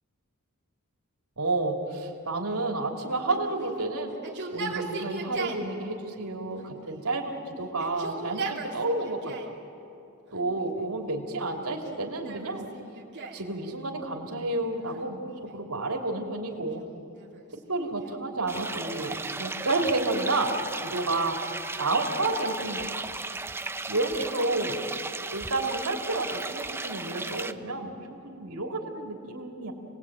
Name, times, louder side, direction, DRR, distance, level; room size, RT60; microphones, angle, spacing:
voice 1, 1.4-4.2 4.5-9.6 10.3-12.7 13.3-16.8 17.5-20.5 20.8-21.4 21.8-23.1 23.9-24.8 25.1-29.7, right 2 dB, 85° right, 2 dB, 3.1 m, -30 dB
Yell, 3.3-5.7 6.6-7.3 7.7-9.6 10.3-11.0 11.7-13.5 14.9-15.7 16.5-18.3, right 3 dB, 55° right, 3.2 m, -39 dB
sound 1, 18.5-27.5, right 3 dB, 10° right, 0.6 m, -35 dB
29.0 x 19.5 x 8.9 m, 2.7 s
head